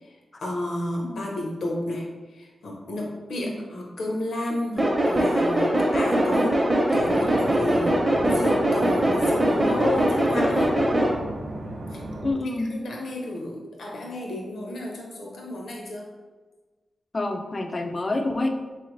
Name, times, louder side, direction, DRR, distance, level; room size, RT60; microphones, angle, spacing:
voice 1, 0.4-2.1 2.3-10.7 11.9-12.0 12.7-16.1, left 1 dB, 85° left, -1 dB, 0.9 m, -31 dB
sound 1, 4.8-11.1, right 1 dB, 25° right, 0.7 m, -22 dB
sound 2, 6.9-12.3, right 1 dB, 75° right, 0.6 m, -36 dB
voice 2, 12.2-12.8 17.1-18.6, left 2 dB, 30° left, 6 dB, 0.3 m, -27 dB
4.0 x 3.3 x 3.1 m, 1.3 s
wide cardioid pair, 125°, 0 cm